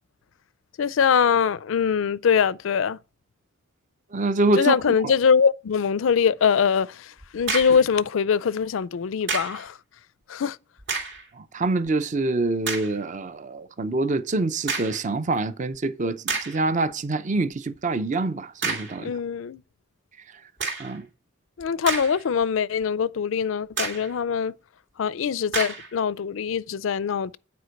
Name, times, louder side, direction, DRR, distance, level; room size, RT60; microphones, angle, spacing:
voice 1, 0.8-3.0 4.6-9.8 10.3-10.6 19.0-19.6 21.6-24.5 25.0-27.4, left 6 dB, 75° left, 0.4 m, -23 dB
voice 2, 4.1-4.8 5.0-5.1 11.4-19.1 20.8-21.1, right 2 dB, 35° right, 0.6 m, -25 dB
sound 1, 7.2-7.9 9.3-9.7 10.8-11.3 11.9-12.0 12.6-13.0 14.7-15.1 15.7-15.8 16.3-16.7 18.6-19.0 20.6-21.0 21.6-22.4 22.8-22.9 23.8-24.1 25.5-25.9, right 4 dB, 55° right, 2.6 m, -30 dB
9.5 x 4.5 x 6.4 m
head